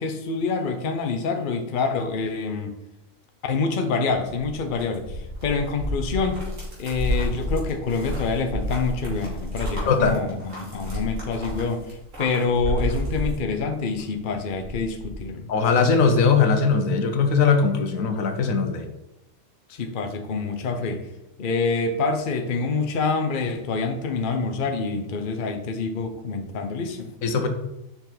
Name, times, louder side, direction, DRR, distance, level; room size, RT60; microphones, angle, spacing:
voice 1, 0.0-2.7 3.4-6.4 6.8-15.5 19.7-21.1 21.4-27.1, left 4 dB, 45° left, 5 dB, 0.9 m, -26 dB
sound 1, 4.2-14.0 14.3-15.2, left 1 dB, 70° right, 3.0 m, -31 dB
voice 2, 15.5-18.9 27.2-27.5, left 5 dB, 80° left, 6 dB, 1.3 m, -20 dB
7.1 x 5.7 x 4.0 m, 0.91 s
omnidirectional pair, 1.4 m